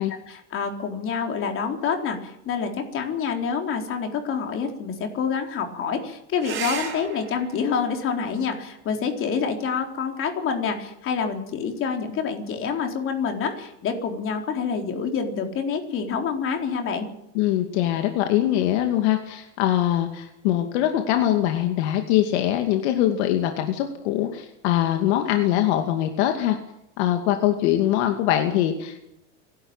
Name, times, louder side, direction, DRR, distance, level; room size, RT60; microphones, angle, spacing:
voice 1, 0.3-17.1, left 6 dB, 35° left, 4 dB, 4.0 m, -27 dB
sound 1, 6.4-11.4 13.3-14.0 17.4-17.5 17.8-17.9, right 6 dB, 35° right, 7.9 m, -39 dB
voice 2, 17.3-26.6 27.0-29.0, left 12 dB, 70° left, 5 dB, 2.4 m, -22 dB
26.5 x 12.0 x 9.0 m, 0.80 s
supercardioid pair, 140°, 35 cm